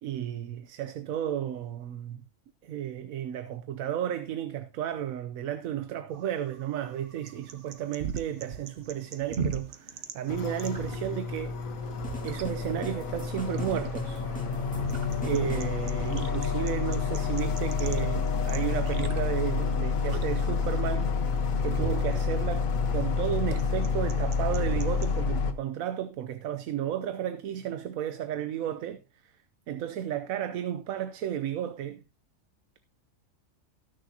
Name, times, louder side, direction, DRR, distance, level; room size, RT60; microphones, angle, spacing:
voice 1, 0.0-2.2 2.6-11.6 12.2-14.2 15.2-21.1 21.6-29.3 29.7-32.0, right 10 dB, 85° right, 1.1 m, -33 dB
sound 1, 6.1-25.2, right 6 dB, 60° right, 1.2 m, -40 dB
sound 2, 10.3-25.5, left 5 dB, 75° left, 1.6 m, -29 dB
sound 3, 12.0-15.7, left 2 dB, 5° left, 1.7 m, -45 dB
18.5 x 6.6 x 2.8 m
omnidirectional pair, 1.4 m